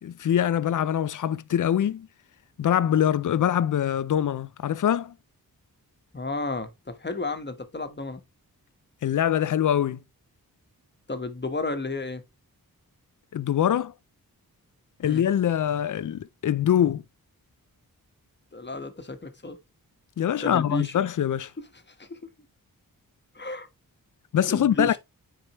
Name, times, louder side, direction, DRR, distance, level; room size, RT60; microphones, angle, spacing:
voice 1, 0.0-2.1 2.6-5.2 9.0-10.0 13.3-13.9 15.0-17.0 20.2-21.5 24.3-25.0, left 10 dB, 55° left, 0.5 m, -24 dB
voice 2, 6.1-8.2 11.1-12.2 15.0-15.2 18.5-19.6 20.4-20.9 21.9-22.2 23.3-23.7 24.5-25.0, left 2 dB, 30° left, 1.3 m, -32 dB
8.8 x 4.8 x 3.0 m
wide cardioid pair, 80°, 36 cm